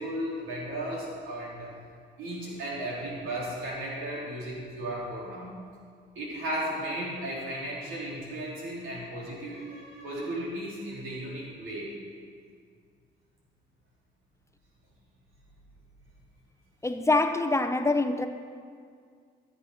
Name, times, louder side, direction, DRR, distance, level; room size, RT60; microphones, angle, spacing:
voice 1, 0.0-1.7 2.2-5.5 6.2-11.9, right 1 dB, 85° right, 3.9 m, -35 dB
voice 2, 16.8-18.3, left 2 dB, 15° left, 0.7 m, -25 dB
14.5 x 8.1 x 5.7 m
cardioid pair, 90°, 20 cm